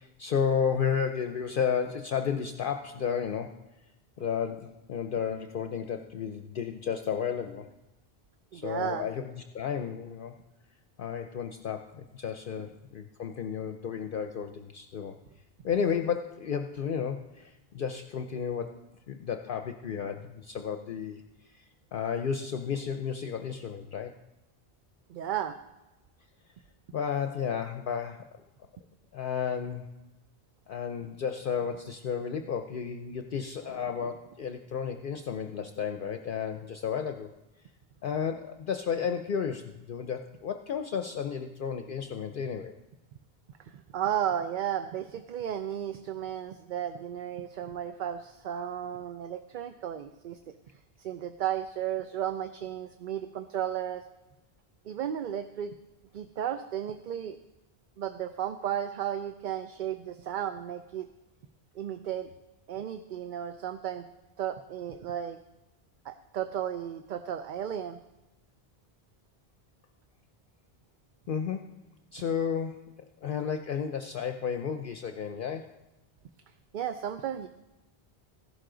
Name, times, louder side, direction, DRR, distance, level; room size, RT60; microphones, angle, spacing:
voice 1, 0.0-3.6 4.2-7.7 8.5-10.4 11.0-15.2 15.6-18.7 19.1-21.2 21.5-21.6 21.9-24.1 26.9-28.2 29.1-29.9 30.7-37.3 38.0-42.8 71.3-71.8 72.1-72.9 73.2-75.7, left 7 dB, 60° left, 6 dB, 0.7 m, -32 dB
voice 2, 8.5-9.1 25.1-25.6 43.9-50.4 51.0-54.0 54.9-55.7 56.1-57.4 58.0-61.1 61.8-62.3 62.7-64.1 64.4-65.4 66.0-68.0 76.7-77.5, right 10 dB, 60° right, 9 dB, 0.6 m, -34 dB
15.0 x 11.5 x 3.8 m, 1.0 s
omnidirectional pair, 1.0 m